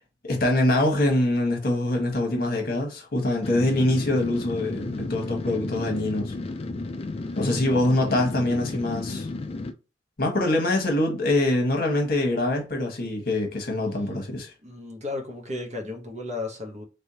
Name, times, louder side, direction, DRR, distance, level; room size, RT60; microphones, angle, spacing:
voice 1, 0.2-6.3 7.4-9.3 10.2-14.5, left 1 dB, 55° left, 1.2 m, -24 dB
sound 1, 3.4-9.7, left 2 dB, 35° left, 0.4 m, -33 dB
voice 2, 14.6-16.8, left 2 dB, 40° right, 1.0 m, -34 dB
3.4 x 3.4 x 2.8 m
head